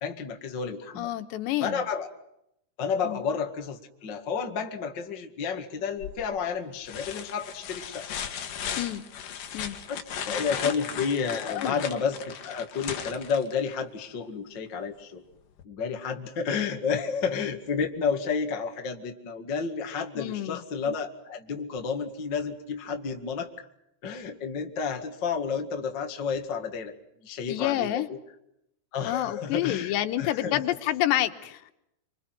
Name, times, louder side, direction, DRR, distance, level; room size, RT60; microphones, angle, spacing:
voice 1, 0.0-1.1 1.6-2.1 2.8-8.1 9.9-15.2 15.6-23.7 24.0-26.9 27.2-28.0 28.9-30.6, left 6 dB, 40° left, 4 dB, 1.8 m, -31 dB
voice 2, 1.0-1.9 3.0-3.2 8.8-9.0 9.5-9.8 10.3-10.4 11.4-11.8 20.2-20.6 27.5-28.1 29.0-31.7, left 13 dB, 85° left, 7 dB, 3.4 m, -28 dB
sound 1, 6.0-6.4 6.9-13.8 15.6-15.7, left 8 dB, 55° left, 3.2 m, -36 dB
26.5 x 26.0 x 6.0 m, 0.81 s
omnidirectional pair, 4.9 m